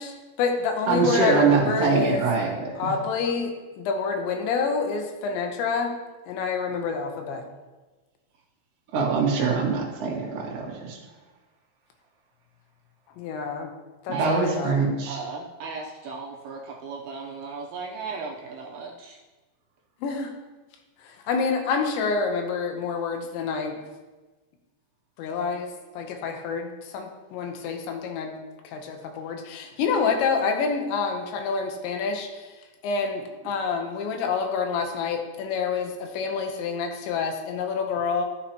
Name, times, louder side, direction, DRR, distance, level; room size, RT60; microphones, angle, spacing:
voice 1, 0.0-2.2 2.8-3.5 3.8-5.9 6.3-7.4 13.2-13.7 14.1-14.8 20.0-20.3 21.0-23.8 25.2-28.4 28.7-32.5 32.8-38.3, left 5 dB, 90° left, 4 dB, 3.3 m, -27 dB
voice 2, 0.9-2.9 8.9-11.0 14.1-15.2, right 4 dB, 50° right, -3 dB, 2.0 m, -24 dB
voice 3, 14.1-14.4 15.1-19.2, right 4 dB, 80° right, -1 dB, 2.4 m, -36 dB
13.0 x 6.7 x 3.0 m, 1.2 s
omnidirectional pair, 5.0 m